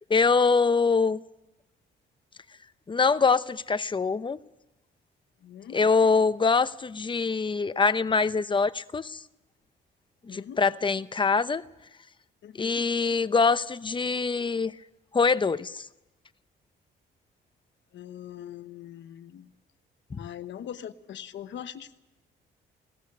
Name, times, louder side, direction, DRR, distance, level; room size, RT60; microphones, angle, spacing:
voice 1, 0.1-1.2 2.9-4.4 5.7-9.2 10.3-11.6 12.6-14.7 15.1-15.9 20.1-20.2, left 4 dB, 25° left, 0.8 m, -24 dB
voice 2, 5.4-5.8 10.3-10.6 12.4-12.9 17.9-19.5 20.2-22.0, left 10 dB, 70° left, 1.1 m, -42 dB
18.5 x 14.5 x 9.7 m
cardioid pair, 90°, 20 cm